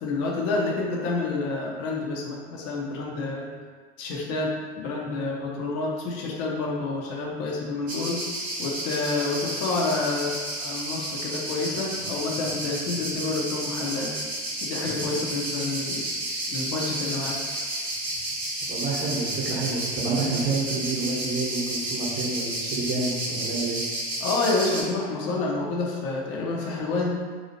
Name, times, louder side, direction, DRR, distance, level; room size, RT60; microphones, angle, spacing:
voice 1, 0.0-3.5 4.0-8.2 8.6-14.1 14.6-16.1 16.5-17.6 24.2-27.1, left 3 dB, 50° left, -2 dB, 0.7 m, -28 dB
sound 1, 7.9-24.8, right 1 dB, 90° right, 0.9 m, -31 dB
voice 2, 18.7-23.8, right 3 dB, 35° right, -4 dB, 0.9 m, -28 dB
2.8 x 2.3 x 2.7 m, 1.5 s
hypercardioid pair, 90°, 32 cm